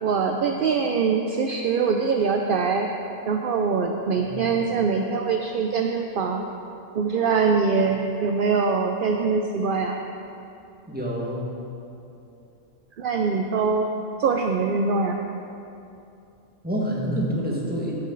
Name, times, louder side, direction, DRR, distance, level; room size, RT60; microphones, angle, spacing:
voice 1, 0.0-2.9 3.2-6.4 6.9-10.0 13.0-13.9 14.2-15.2, right 5 dB, 60° right, 3 dB, 0.6 m, -23 dB
voice 2, 4.2-4.6 10.9-11.5 16.6-17.9, equal, 5° right, -4 dB, 1.5 m, -27 dB
11.5 x 8.4 x 3.9 m, 2.7 s
omnidirectional pair, 1.4 m